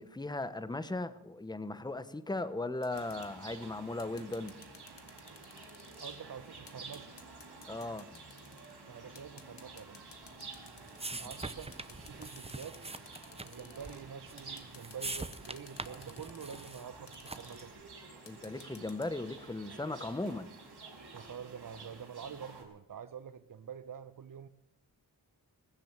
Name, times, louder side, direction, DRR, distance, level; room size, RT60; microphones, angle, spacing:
voice 1, 0.0-4.5 7.7-8.2 11.1-11.2 18.2-20.6, left 2 dB, 10° left, 0.9 m, -38 dB
sound 1, 2.8-3.3 4.0-6.2 6.7-8.8 9.1-11.2 11.7-14.0 14.4-16.8 17.1-17.6 18.3-19.1, left 6 dB, 80° left, 1.6 m, -55 dB
sound 2, 2.9-22.6, right 3 dB, 65° right, 4.4 m, -51 dB
voice 2, 6.0-7.2 8.9-10.1 11.2-12.8 13.4-17.8 21.1-24.5, right 7 dB, 50° right, 0.8 m, -47 dB
sound 3, 10.2-17.7, right 3 dB, 15° right, 0.6 m, -44 dB
20.5 x 7.6 x 7.5 m
wide cardioid pair, 85°, 42 cm